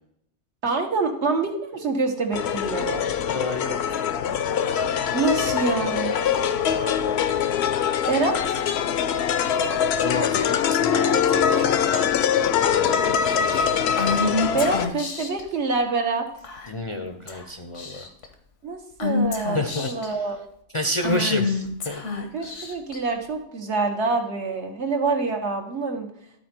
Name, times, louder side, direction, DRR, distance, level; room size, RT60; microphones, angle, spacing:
voice 1, 0.6-3.1 5.1-6.2 8.1-8.6 14.5-16.3 18.6-20.4 22.3-26.1, right 3 dB, 70° right, 3 dB, 1.4 m, -26 dB
sound 1, 2.3-14.9, left 8 dB, 65° left, 0.8 m, -23 dB
voice 2, 3.3-4.0 6.7-7.3 10.0-12.1 12.6-13.7 16.7-18.1 19.5-20.2 20.7-22.0 22.4-22.5, left 1 dB, 35° left, 4 dB, 0.5 m, -30 dB
Female speech woman speaking / Whispering, 14.0-15.4 16.4-16.9 17.3-17.4 17.7-18.3 19.0-20.1 21.0-23.0, left 3 dB, 85° left, 1.4 m, -27 dB
12.5 x 4.2 x 4.4 m, 0.73 s
omnidirectional pair, 1.2 m